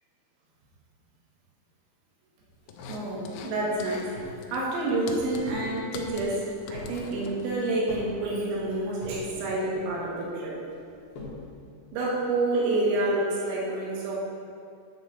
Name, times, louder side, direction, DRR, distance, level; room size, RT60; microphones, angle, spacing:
sound 1, 2.7-3.5 3.8-4.1 4.4-7.7, left 5 dB, 90° left, 2.5 m, -43 dB
sound 2, 2.8-4.5 4.8-4.9 5.2-5.7 6.1-6.9 7.2-9.3 9.5-10.2 10.7-11.4, left 2 dB, 60° left, 2.9 m, -43 dB
voice 1, 2.9-10.6 11.9-14.2, right 2 dB, 85° right, -4 dB, 4.1 m, -28 dB
9.3 x 4.0 x 6.4 m, 2.4 s
omnidirectional pair, 5.9 m